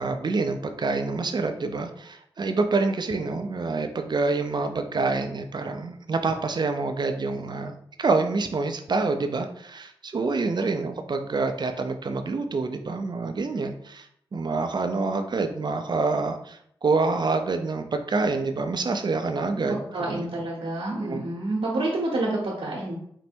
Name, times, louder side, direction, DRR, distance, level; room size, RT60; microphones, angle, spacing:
voice 1, 0.0-7.7 8.0-14.1 14.3-20.2 21.0-21.2, right 3 dB, 50° right, 7 dB, 0.5 m, -27 dB
voice 2, 19.7-23.0, right 2 dB, 70° right, -3 dB, 1.0 m, -28 dB
4.4 x 2.1 x 4.3 m, 0.69 s
cardioid pair, 45°, 9 cm